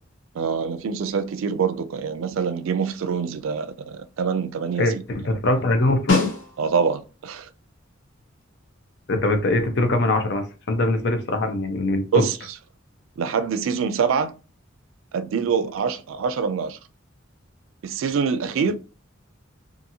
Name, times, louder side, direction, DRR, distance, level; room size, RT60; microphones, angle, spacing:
voice 1, 0.3-5.0 6.6-7.5 12.1-12.4 13.2-14.3 15.1-16.8 17.8-18.7, right 6 dB, 85° right, 0.4 m, -25 dB
voice 2, 4.8-6.3 9.1-12.2, left 2 dB, 60° left, 0.6 m, -22 dB
Snare drum, 6.1-7.0 11.4-11.5, left 4 dB, 90° left, 0.9 m, -24 dB
2.7 x 2.5 x 2.6 m
head